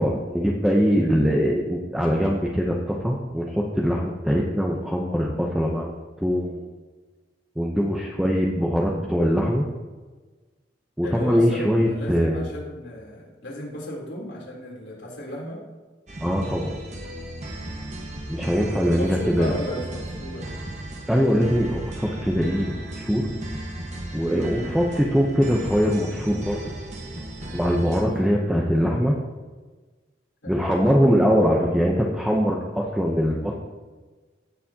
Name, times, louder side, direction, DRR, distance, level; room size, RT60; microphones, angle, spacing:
voice 1, 0.0-6.6 7.6-9.7 11.0-12.4 16.2-16.7 18.3-19.5 21.1-23.2 24.1-26.7 27.5-29.2 30.5-33.5, equal, 5° right, -2 dB, 0.8 m, -22 dB
voice 2, 11.0-15.6 18.4-20.6 24.6-24.8 28.5-28.7 30.4-30.6, left 1 dB, 85° left, -4 dB, 3.4 m, -35 dB
sound 1, 16.1-28.0, right 1 dB, 40° right, 1.3 m, -35 dB
16.5 x 6.9 x 2.9 m, 1.3 s
head